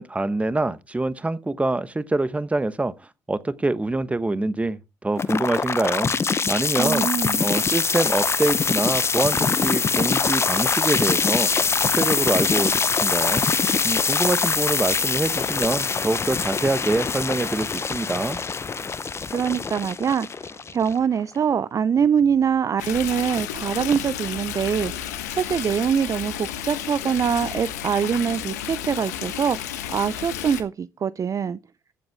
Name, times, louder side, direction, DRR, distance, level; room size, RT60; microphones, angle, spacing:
voice 1, 0.0-2.9 3.3-6.1 6.5-7.1 7.4-11.5 11.9-13.4 13.8-18.4, right 2 dB, 15° right, 1.1 m, -25 dB
sound 1, 5.2-21.2, left 5 dB, 30° left, 0.8 m, -23 dB
voice 2, 6.8-7.5 19.3-29.6 29.9-31.6, right 7 dB, 40° right, 0.5 m, -24 dB
Stream, 22.8-30.6, left 10 dB, 85° left, 1.3 m, -32 dB
14.5 x 7.9 x 3.6 m
hypercardioid pair, 55°, 9 cm